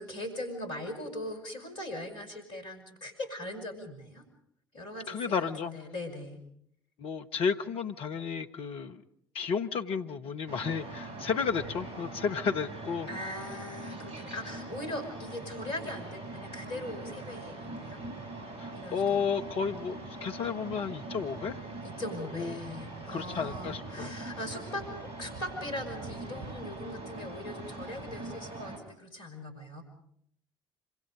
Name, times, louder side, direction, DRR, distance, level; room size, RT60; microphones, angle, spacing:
voice 1, 0.0-4.2 4.7-6.4 13.1-18.0 18.7-19.2 21.8-29.8, left 1 dB, 65° left, 5 dB, 5.5 m, -40 dB
voice 2, 5.1-5.8 7.0-9.0 9.3-13.1 18.6-21.6 22.3-22.6 23.1-24.1, left 6 dB, 50° left, 7 dB, 1.3 m, -32 dB
sound 1, 10.5-28.8, right 2 dB, 55° right, 5.2 m, -42 dB
26.5 x 25.5 x 5.2 m, 0.68 s
figure-of-eight pair, 55°, 12 cm